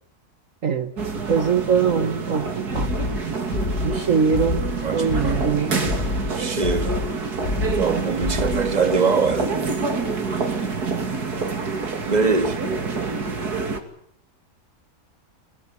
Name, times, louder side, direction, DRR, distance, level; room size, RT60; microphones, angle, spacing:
voice 1, 0.6-0.9 1.3-2.9 3.8-4.6 4.9-5.9 10.4-10.8 12.8-13.1, right 6 dB, 55° right, 1.6 m, -23 dB
sound 1, 1.0-13.8, right 4 dB, 80° right, 3.1 m, -27 dB
sound 2, 2.7-8.8, left 3 dB, 45° left, 1.4 m, -28 dB
voice 2, 4.8-5.4 6.2-7.0 7.7-9.6 12.0-12.6, right 4 dB, 25° right, 1.9 m, -23 dB
25.0 x 18.0 x 8.5 m
omnidirectional pair, 1.7 m